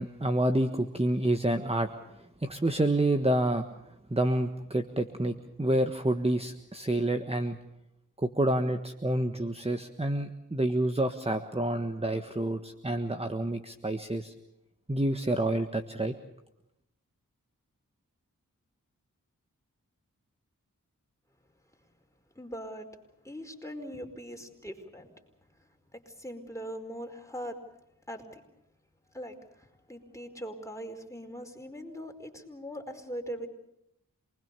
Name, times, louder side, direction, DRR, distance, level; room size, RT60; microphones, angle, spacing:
voice 1, 0.0-1.9 2.4-3.7 4.1-7.6 8.2-14.3 14.9-16.1, right 1 dB, 20° right, 6 dB, 1.5 m, -28 dB
voice 2, 22.3-22.9 23.2-25.1 25.6-27.6 28.1-28.4 29.1-33.5, equal, 10° left, 3 dB, 4.8 m, -41 dB
27.5 x 20.5 x 6.9 m, 0.84 s
cardioid pair, 40°, 33 cm